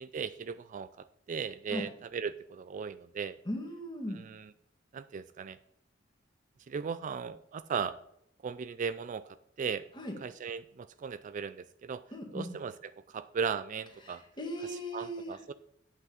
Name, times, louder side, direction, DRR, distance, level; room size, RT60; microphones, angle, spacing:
voice 1, 0.0-3.4 4.1-4.5 4.9-5.6 6.7-8.0 8.4-9.2 9.6-9.8 10.2-12.0 12.3-12.7 13.1-14.2 14.7-15.5, right 6 dB, 40° right, 14 dB, 0.3 m, -37 dB
voice 2, 3.5-4.2 10.0-10.1 12.1-12.5 14.0-15.4, equal, 25° left, 2 dB, 1.9 m, -38 dB
8.2 x 6.0 x 7.0 m, 0.75 s
head